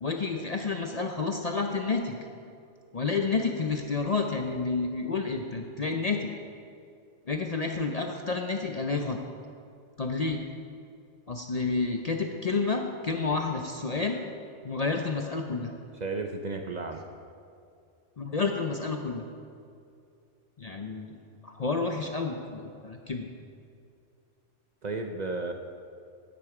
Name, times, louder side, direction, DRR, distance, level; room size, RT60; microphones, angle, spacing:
voice 1, 0.0-2.2 2.9-6.3 7.3-9.2 10.0-10.4 11.3-14.2 14.6-15.7 18.2-19.3 20.6-21.2 21.4-23.3, left 4 dB, 45° left, 3 dB, 0.5 m, -30 dB
voice 2, 16.0-17.0 24.8-25.5, right 3 dB, 45° right, 4 dB, 0.6 m, -33 dB
10.5 x 9.5 x 4.8 m, 2.4 s
omnidirectional pair, 1.2 m